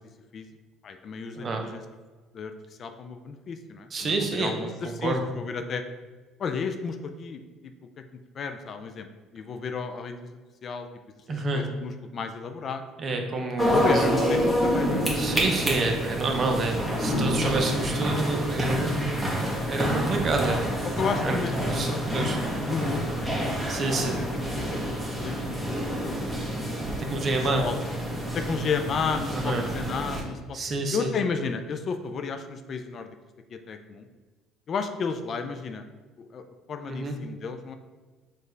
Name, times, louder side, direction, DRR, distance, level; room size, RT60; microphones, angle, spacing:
voice 1, 0.8-1.8 2.3-2.5 2.8-5.8 6.4-7.7 8.3-10.3 10.6-10.9 11.5-12.8 13.7-15.4 17.6-17.7 20.8-22.4 22.7-23.3 23.9-26.7 27.2-27.8 28.3-30.6 30.9-33.1 33.5-34.1 34.7-35.8 36.2-36.4 36.7-37.8, left 5 dB, 50° left, 7 dB, 0.3 m, -33 dB
voice 2, 3.9-4.7 5.0-5.2 11.3-11.7 13.0-14.0 15.2-19.0 19.7-20.6 21.2-21.4 21.7-22.4 23.7-24.2 27.0-27.7 29.3-29.6 30.5-31.1 36.9-37.2, right 2 dB, 40° right, 3 dB, 0.7 m, -28 dB
sound 1, 13.6-30.2, equal, 5° right, 1.1 m, -28 dB
4.3 x 2.4 x 3.3 m, 1.3 s
supercardioid pair, 75°, 0 cm